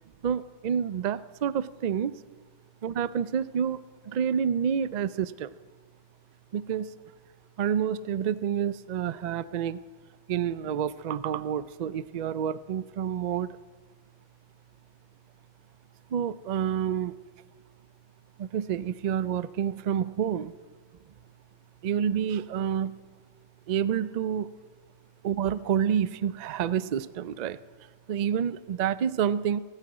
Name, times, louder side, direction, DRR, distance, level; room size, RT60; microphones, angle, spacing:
voice 1, 0.2-2.2 2.8-3.8 4.1-5.5 6.5-6.9 7.6-9.8 10.3-13.6 16.1-17.2 18.4-20.5 21.8-23.0 23.7-24.5 25.2-27.6 28.1-29.6, right 8 dB, 80° right, 16 dB, 0.3 m, -28 dB
17.5 x 9.1 x 8.8 m, 1.4 s
omnidirectional pair, 1.4 m